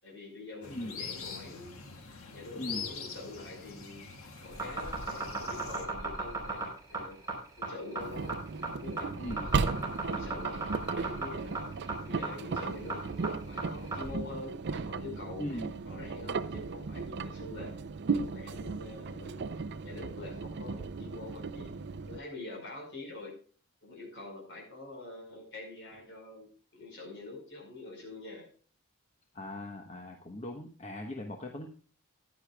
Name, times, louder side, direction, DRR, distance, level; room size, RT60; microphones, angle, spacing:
voice 1, 0.0-1.7 2.3-4.1 4.4-7.2 7.6-8.4 8.7-9.1 9.4-11.7 12.0-17.7 18.1-19.5 19.8-21.7 22.1-23.4 23.8-28.5, left 2 dB, 55° left, 1 dB, 5.2 m, -45 dB
sound 1, 0.6-5.9, left 5 dB, 70° left, 1.6 m, -43 dB
voice 2, 2.5-2.9 9.2-9.5 15.4-15.7 29.3-31.7, left 1 dB, 30° left, 2 dB, 1.1 m, -39 dB
sound 2, 4.5-14.1, right 3 dB, 15° right, 3.8 m, -36 dB
Engine, 8.0-22.2, right 4 dB, 50° right, 0.5 m, -36 dB
15.0 x 10.5 x 2.3 m, 0.41 s
head